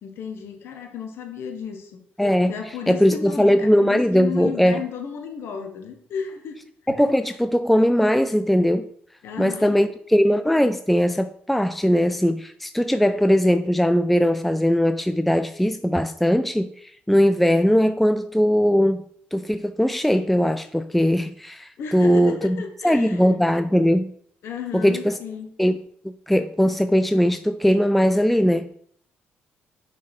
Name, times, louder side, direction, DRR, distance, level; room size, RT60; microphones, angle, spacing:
voice 1, 0.0-1.9 2.5-6.6 9.2-9.9 21.8-23.2 24.4-25.5, left 6 dB, 75° left, 1.3 m, -34 dB
voice 2, 2.2-2.6 2.9-4.8 6.9-8.9 9.4-22.6 22.8-24.1 24.7-25.2 25.6-25.8 26.0-28.7, equal, 5° left, 0.3 m, -20 dB
6.3 x 4.4 x 5.4 m
cardioid pair, 85°, 4 cm